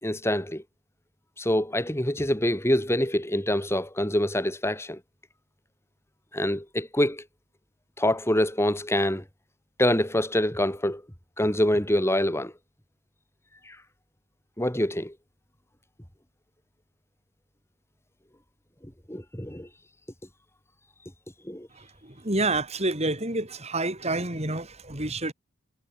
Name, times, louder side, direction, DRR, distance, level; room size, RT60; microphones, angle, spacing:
voice 1, 0.0-0.6 1.4-5.0 6.3-7.2 8.0-9.2 9.8-11.0 11.4-12.5 13.7-13.8 14.6-15.1 19.1-19.7 21.5-21.7, left 1 dB, 10° left, 3.9 m, -25 dB
voice 2, 21.7-25.3, right 2 dB, 30° right, 4.4 m, -28 dB
head